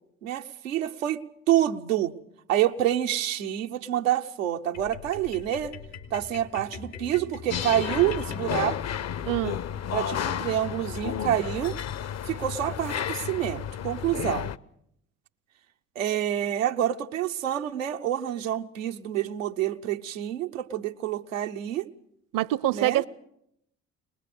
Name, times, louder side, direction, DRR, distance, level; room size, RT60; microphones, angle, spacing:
voice 1, 0.2-2.2 2.5-5.8 6.1-8.8 9.9-11.8 12.3-14.5 16.0-21.9 22.7-23.0, right 12 dB, 90° right, 0.9 m, -27 dB
sound 1, 4.7-9.2, left 6 dB, 85° left, 3.8 m, -42 dB
sound 2, 7.5-14.6, left 9 dB, 45° left, 0.8 m, -32 dB
voice 2, 9.2-9.6 22.3-23.1, right 15 dB, 55° right, 0.8 m, -25 dB
22.5 x 20.5 x 6.7 m
hypercardioid pair, 50°, 38 cm